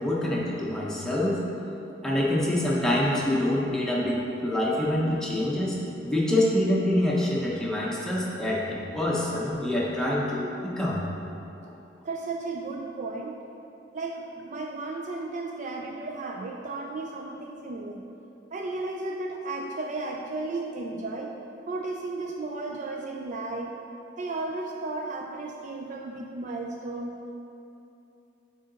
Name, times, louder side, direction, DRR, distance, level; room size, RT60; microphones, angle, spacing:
voice 1, 0.0-1.4 2.0-5.8 6.0-11.0, left 1 dB, 5° left, -5 dB, 0.9 m, -26 dB
voice 2, 12.0-13.4 13.9-18.0 18.5-21.4 21.7-23.7 24.2-27.2, right 3 dB, 40° right, 1 dB, 0.4 m, -34 dB
8.7 x 3.9 x 3.9 m, 2.8 s
head